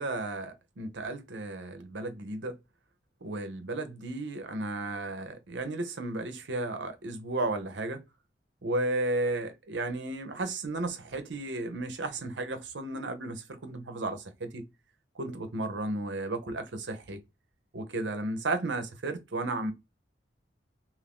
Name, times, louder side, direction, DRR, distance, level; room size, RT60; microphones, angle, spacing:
voice 1, 0.0-2.6 3.2-8.0 8.6-14.6 15.2-17.2 17.7-19.7, right 2 dB, 70° right, 0.7 m, -34 dB
2.6 x 2.6 x 3.5 m
head